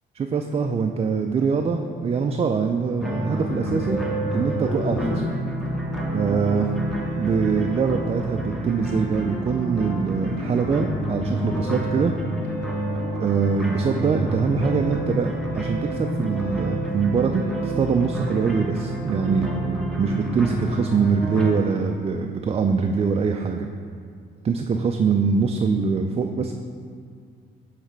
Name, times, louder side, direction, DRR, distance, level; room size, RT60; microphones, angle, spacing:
voice 1, 0.1-4.0 4.3-5.2 6.1-6.7 7.2-12.1 13.2-19.5 20.0-23.7 24.4-26.5, right 5 dB, 30° right, 4 dB, 0.4 m, -23 dB
sound 1, 3.0-21.5, right 1 dB, ahead, 1.2 m, -29 dB
Musical instrument, 3.4-21.0, right 1 dB, 50° left, 1.5 m, -35 dB
7.9 x 3.3 x 5.9 m, 2.1 s
cardioid pair, 90°, 20 cm